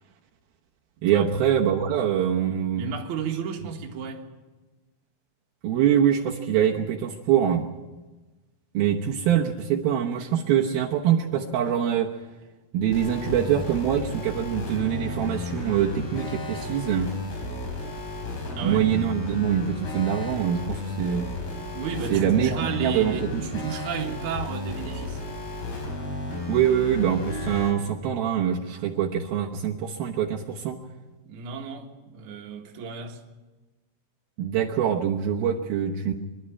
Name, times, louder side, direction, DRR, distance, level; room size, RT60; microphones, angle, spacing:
voice 1, 1.0-2.8 5.6-7.7 8.7-12.1 12.7-17.1 18.6-21.3 22.1-23.6 26.5-30.8 34.4-36.1, right 9 dB, 75° right, 2.9 m, -24 dB
voice 2, 2.8-4.3 18.5-18.9 21.7-25.2 31.3-33.2, right 6 dB, 55° right, 2.9 m, -33 dB
sound 1, 12.9-27.7, left 2 dB, 75° left, 6.2 m, -33 dB
25.5 x 12.0 x 9.8 m
omnidirectional pair, 4.5 m